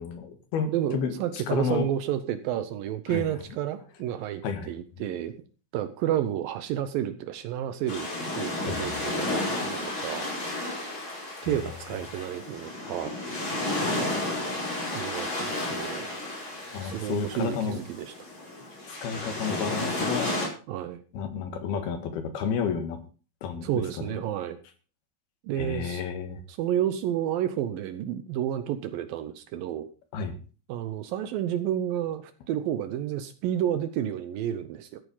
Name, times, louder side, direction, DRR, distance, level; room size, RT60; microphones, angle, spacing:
voice 1, 0.0-1.9 3.1-3.2 4.4-4.7 8.6-9.0 11.4-11.8 16.7-17.8 18.9-20.3 21.1-23.0 23.4-24.3 25.6-26.4 30.1-30.4, left 6 dB, 85° left, 8 dB, 3.7 m, -31 dB
voice 2, 0.7-5.3 5.7-8.1 8.4-10.3 11.4-13.1 14.9-16.1 16.8-18.1 20.7-21.0 23.6-24.6 25.4-26.0 26.5-29.9 30.7-35.0, right 11 dB, 75° right, 11 dB, 2.5 m, -31 dB
sound 1, 7.9-20.5, left 2 dB, 30° left, 5.7 m, -32 dB
14.0 x 8.7 x 5.5 m, 0.37 s
omnidirectional pair, 4.3 m